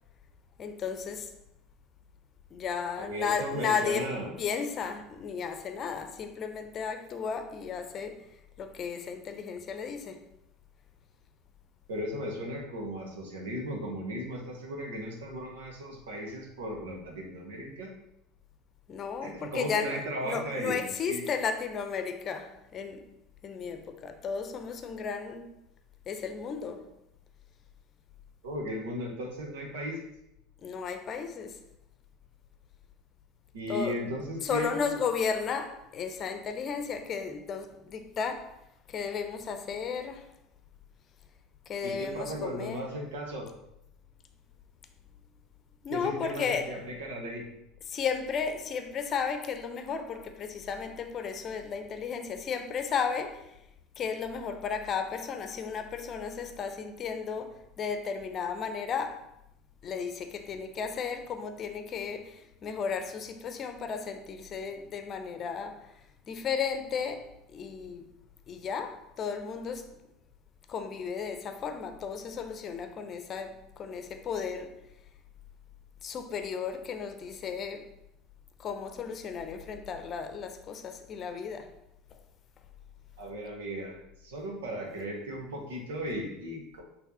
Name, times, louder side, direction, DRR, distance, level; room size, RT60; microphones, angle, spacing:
voice 1, 0.6-1.3 2.5-4.1 4.4-10.3 18.9-23.1 23.4-25.6 26.1-26.9 30.6-31.6 33.7-34.0 34.4-38.6 38.9-40.3 41.7-42.9 45.8-46.8 47.9-53.6 54.0-59.3 59.8-68.1 68.5-70.0 70.7-74.9 76.0-77.9 78.6-81.7, left 6 dB, 35° left, 0.8 m, -34 dB
voice 2, 3.0-4.4 11.9-17.9 19.2-21.2 28.4-30.0 33.5-35.0 41.8-43.5 45.9-47.5 83.2-84.0 84.2-86.8, equal, 65° right, 1.4 m, -36 dB
5.8 x 3.4 x 5.6 m
figure-of-eight pair, 70°, 0 cm